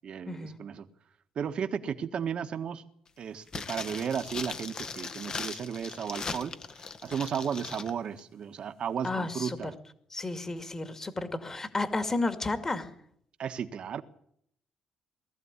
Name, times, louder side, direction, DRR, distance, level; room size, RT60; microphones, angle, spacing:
voice 1, 0.0-0.9 1.3-2.8 3.2-6.5 7.0-9.7 13.4-14.0, right 7 dB, 55° right, 9 dB, 1.5 m, -34 dB
sound 1, 3.5-7.9 8.2-8.3, left 4 dB, 40° left, 1.6 m, -39 dB
voice 2, 9.0-9.6 10.1-12.9, left 3 dB, 25° left, 9 dB, 2.3 m, -32 dB
19.5 x 14.0 x 9.8 m, 0.68 s
cardioid pair, 115°, 2 cm